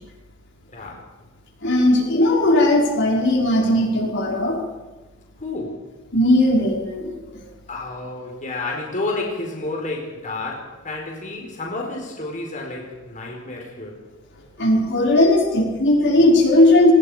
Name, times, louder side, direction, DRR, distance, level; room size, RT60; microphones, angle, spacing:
voice 1, 0.7-1.0 5.4-5.9 7.7-14.0, left 2 dB, 40° left, 0 dB, 4.7 m, -30 dB
voice 2, 1.6-4.6 6.1-7.4 14.6-16.9, left 1 dB, 60° left, -1 dB, 5.2 m, -17 dB
28.0 x 20.5 x 5.1 m, 1.2 s
head